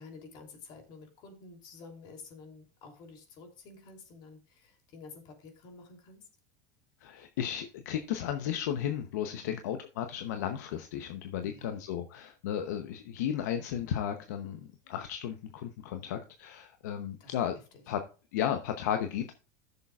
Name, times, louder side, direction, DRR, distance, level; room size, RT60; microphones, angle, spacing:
voice 1, 0.0-6.3 9.4-9.6 11.4-11.7 17.2-17.3 17.7-17.8, left 4 dB, 55° left, 3 dB, 3.1 m, -50 dB
voice 2, 7.0-17.6 17.9-18.0 18.3-19.3, left 9 dB, 80° left, 7 dB, 0.8 m, -34 dB
14.0 x 6.9 x 2.4 m, 0.36 s
supercardioid pair, 110°, 9 cm